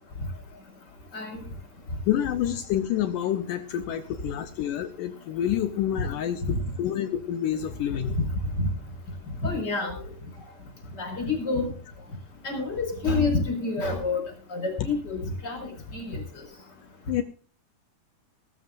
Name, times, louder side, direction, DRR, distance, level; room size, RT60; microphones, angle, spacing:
voice 1, 1.1-1.4 6.5-6.6 7.9-8.2 8.6-8.7 9.4-9.9 11.0-11.7 12.4-14.2 14.5-15.6 15.9-16.4, left 3 dB, 25° left, 3 dB, 5.5 m, -28 dB
voice 2, 2.1-6.4 6.8-8.1 11.0-11.1 17.1-17.2, left 11 dB, 80° left, 9 dB, 1.9 m, -28 dB
18.0 x 14.5 x 2.6 m, 0.42 s
omnidirectional pair, 4.5 m